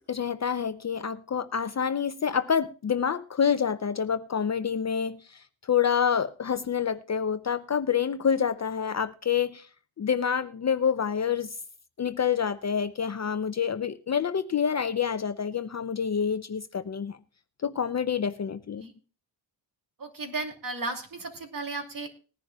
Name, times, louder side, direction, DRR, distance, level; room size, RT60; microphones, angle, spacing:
voice 1, 0.1-9.7 10.0-11.6 12.0-17.2 17.6-18.8, left 7 dB, 40° left, 0.5 m, -27 dB
voice 2, 20.0-22.1, right 3 dB, 45° right, 2.8 m, -34 dB
20.0 x 10.5 x 2.3 m
wide cardioid pair, 125°, 45 cm